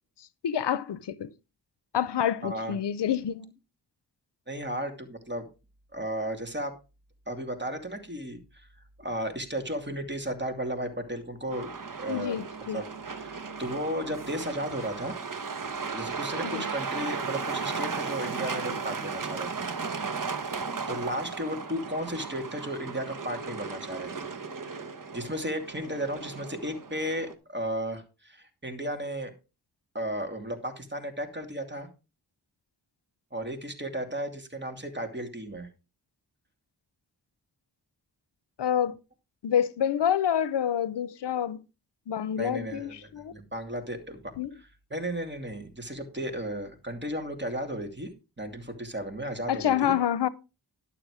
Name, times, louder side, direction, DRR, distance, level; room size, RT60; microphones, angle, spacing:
voice 1, 0.4-1.3 1.9-3.5 12.1-12.8 16.4-16.7 38.6-39.0 39.4-41.6 42.1-43.3 44.4-44.5 49.5-50.3, left 9 dB, 80° left, 0.7 m, -27 dB
voice 2, 2.4-2.8 4.5-5.5 5.9-6.8 7.3-8.7 9.0-11.7 12.0-12.4 12.7-15.2 15.7-19.7 20.9-24.3 24.7-24.8 25.1-29.3 29.9-31.9 33.3-35.7 42.4-44.3 44.9-48.1 48.4-49.9, right 1 dB, 25° right, 2.6 m, -34 dB
Truck, 11.5-27.3, right 5 dB, 50° right, 1.4 m, -36 dB
12.0 x 7.0 x 4.9 m
cardioid pair, 50°, 41 cm